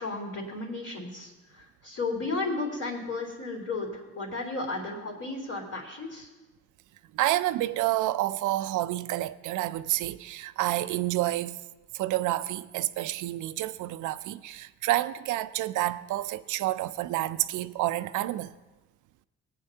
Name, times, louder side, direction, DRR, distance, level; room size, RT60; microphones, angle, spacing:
voice 1, 0.0-6.3, left 3 dB, 55° left, 3.3 m, -34 dB
voice 2, 7.1-11.6 11.9-18.5, right 15 dB, 80° right, 0.5 m, -29 dB
17.5 x 9.0 x 2.8 m
cardioid pair, 90°, 30 cm